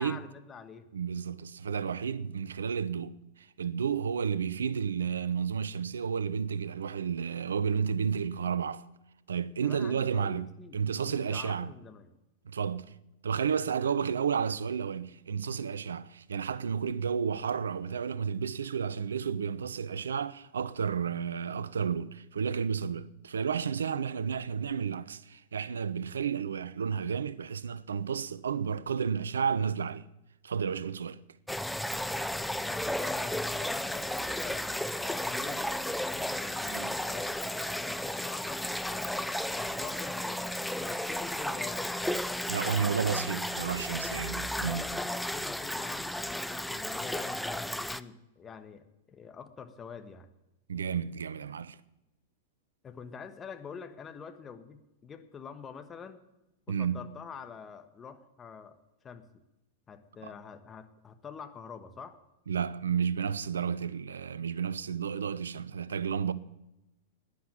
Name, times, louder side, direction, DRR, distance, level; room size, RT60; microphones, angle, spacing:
voice 1, 0.0-0.9 9.6-10.8 11.1-12.1 13.8-13.9 23.8-24.0 32.3-34.7 35.0-39.2 39.5-42.1 44.0-50.3 52.8-56.2 56.7-58.7 59.0-59.3 59.9-62.2, left 6 dB, 20° left, 1.4 m, -46 dB
voice 2, 0.9-3.2 3.6-8.9 9.3-11.7 12.4-12.9 13.2-30.1 30.4-31.2 36.6-36.9 42.5-44.9 50.7-51.8 56.7-57.1 60.2-60.3 62.5-66.3, right 7 dB, 70° right, 0.6 m, -32 dB
sound 1, 31.5-48.0, left 1 dB, ahead, 0.5 m, -34 dB
11.5 x 10.0 x 8.6 m
figure-of-eight pair, 95°, 0 cm